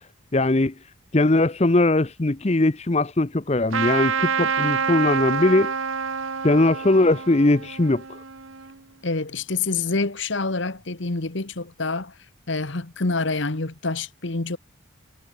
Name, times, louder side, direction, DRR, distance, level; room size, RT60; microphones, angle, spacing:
voice 1, 0.3-0.7 1.1-5.7 6.4-8.2, left 2 dB, 30° left, 0.7 m, -20 dB
Trumpet, 3.7-8.8, right 6 dB, 75° right, 1.2 m, -27 dB
voice 2, 9.0-12.1 12.5-14.6, left 3 dB, 60° left, 1.4 m, -27 dB
head